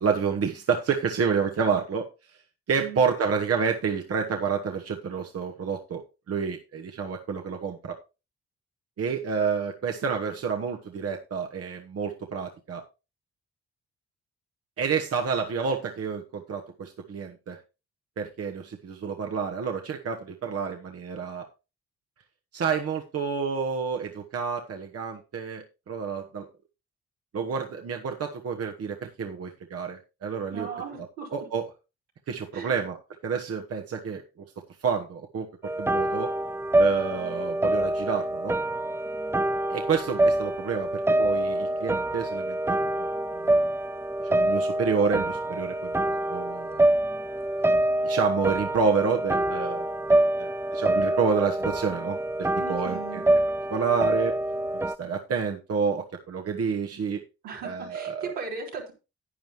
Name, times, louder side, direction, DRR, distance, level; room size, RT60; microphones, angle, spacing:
voice 1, 0.0-2.4 2.7-6.0 6.3-8.0 9.0-12.8 14.8-17.6 18.2-21.5 22.5-26.5 27.3-30.7 31.3-31.6 32.3-33.0 33.2-34.5 34.8-36.3 36.8-38.6 39.7-43.7 44.2-46.0 46.3-46.9 47.5-47.8 48.0-53.2 53.7-54.3 54.7-57.2 57.6-58.3, right 6 dB, 55° right, 3 dB, 1.2 m, -29 dB
voice 2, 30.5-31.3 32.5-32.8 52.6-53.2 57.4-58.9, right 5 dB, 90° right, -3 dB, 3.7 m, -37 dB
sound 1, 35.6-54.9, right 1 dB, 10° right, 0.4 m, -26 dB
11.0 x 9.2 x 3.1 m, 0.29 s
supercardioid pair, 50°, 29 cm